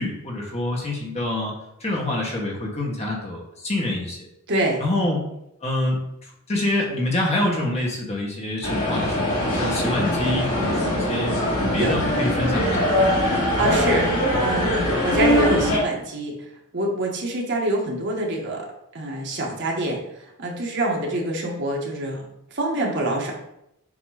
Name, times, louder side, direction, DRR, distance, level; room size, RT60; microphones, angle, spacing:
voice 1, 0.0-1.5 1.8-4.2 4.8-5.2 5.6-6.0 6.2-11.4 11.7-13.0, left 1 dB, 30° left, -2 dB, 1.3 m, -26 dB
voice 2, 4.5-4.8 11.8-12.0 13.3-16.4 16.7-18.7 18.9-20.0 20.4-22.2 22.5-23.3, right 1 dB, 55° right, -1 dB, 1.3 m, -25 dB
sound 1, 8.6-15.8, left 1 dB, 65° left, 2.4 m, -22 dB
7.4 x 3.0 x 4.8 m, 0.82 s
head